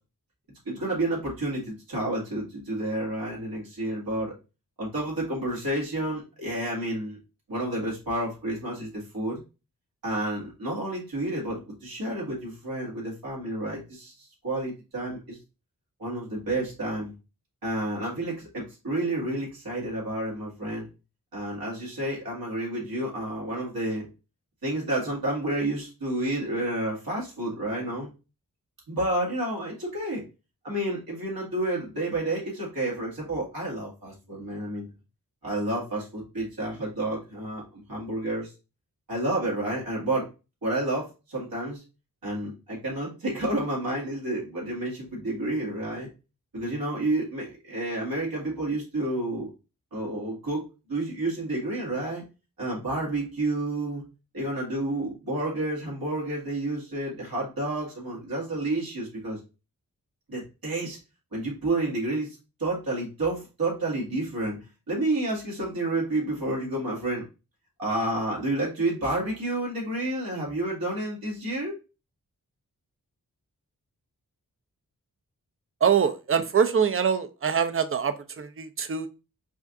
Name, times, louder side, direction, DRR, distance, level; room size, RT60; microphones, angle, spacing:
voice 1, 0.7-4.3 4.8-7.2 7.5-9.4 10.0-15.4 16.0-17.1 17.6-20.9 21.3-24.1 24.6-28.1 28.9-30.2 30.6-34.9 35.4-38.5 39.1-40.3 40.6-41.8 42.2-46.1 46.5-49.5 49.9-50.6 50.9-52.2 52.6-54.0 54.3-59.4 60.3-61.0 61.3-64.6 64.9-67.2 67.8-71.7, right 1 dB, 80° right, -5 dB, 2.0 m, -30 dB
voice 2, 75.8-79.1, right 7 dB, 40° right, 10 dB, 0.5 m, -24 dB
5.0 x 2.5 x 2.5 m, 0.30 s
cardioid pair, 50°, 35 cm